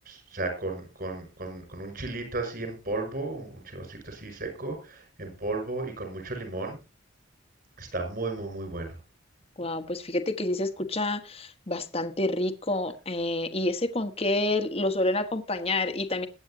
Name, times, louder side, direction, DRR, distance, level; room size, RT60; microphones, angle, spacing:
voice 1, 0.1-6.8 7.8-8.9, right 2 dB, 50° right, 4 dB, 6.2 m, -34 dB
voice 2, 9.6-16.3, left 2 dB, 30° left, 8 dB, 1.3 m, -28 dB
21.5 x 8.9 x 2.8 m, 0.29 s
head